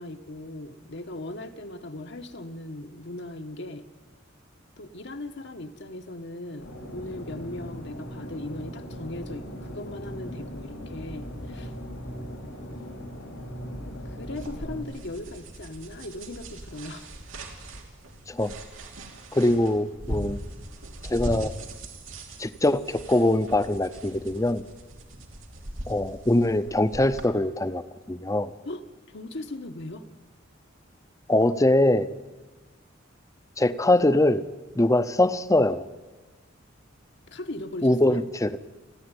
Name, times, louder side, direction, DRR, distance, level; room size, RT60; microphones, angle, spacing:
voice 1, 0.0-3.9 4.8-11.7 12.5-12.8 14.0-17.1 28.6-30.0 37.3-38.2, left 1 dB, 65° left, 6 dB, 1.4 m, -38 dB
sound 1, 6.6-14.8, equal, 90° left, 4.4 m, -39 dB
sound 2, 14.4-27.3, right 1 dB, 90° right, 3.0 m, -40 dB
voice 2, 19.3-20.4 21.0-21.5 22.4-24.6 25.9-27.8 28.1-28.5 31.3-32.1 33.6-34.4 34.8-35.8 37.8-38.6, left 1 dB, 15° left, 13 dB, 0.7 m, -22 dB
29.0 x 10.0 x 9.9 m, 1.2 s
head